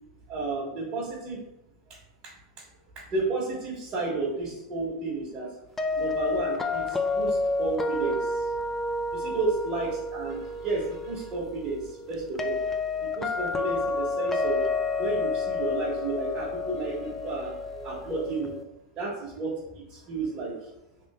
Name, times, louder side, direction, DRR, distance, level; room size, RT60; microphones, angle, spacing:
voice 1, 0.3-1.4 3.1-5.5 5.9-8.5 9.1-12.6 13.0-14.6 15.0-18.5 19.0-20.7, right 3 dB, 35° right, -6 dB, 1.1 m, -32 dB
sound 1, 5.8-18.6, left 3 dB, 10° left, 0.3 m, -30 dB
3.3 x 2.8 x 3.4 m, 0.88 s
supercardioid pair, 135°, 3 cm